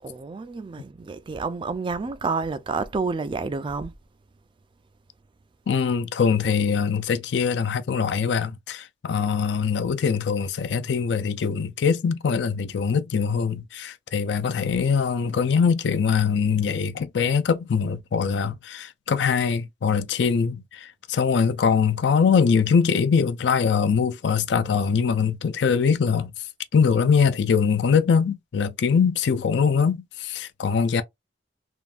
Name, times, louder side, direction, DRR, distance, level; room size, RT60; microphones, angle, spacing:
voice 1, 0.0-3.9, right 4 dB, 25° right, 0.3 m, -29 dB
voice 2, 5.7-26.3 26.7-31.0, left 6 dB, 70° left, 0.4 m, -22 dB
3.5 x 2.6 x 2.4 m
head